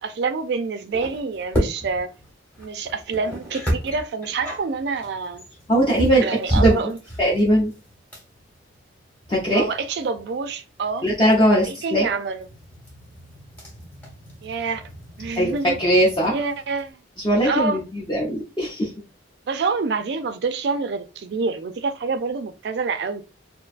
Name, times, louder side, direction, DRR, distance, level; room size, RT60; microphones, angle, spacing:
voice 1, 0.0-2.1 2.6-5.4 6.2-7.0 9.5-11.1 11.6-12.4 14.4-14.8 15.2-15.8 16.3-17.0 17.4-17.8 19.5-23.2, right 4 dB, 65° right, 0.3 m, -27 dB
sound 1, 0.9-16.9, equal, 10° left, 1.0 m, -31 dB
voice 2, 5.7-6.8 7.2-7.7 9.3-9.7 11.0-12.1 15.3-16.3 17.2-18.9, right 1 dB, 25° left, 0.6 m, -20 dB
2.6 x 2.2 x 2.4 m
head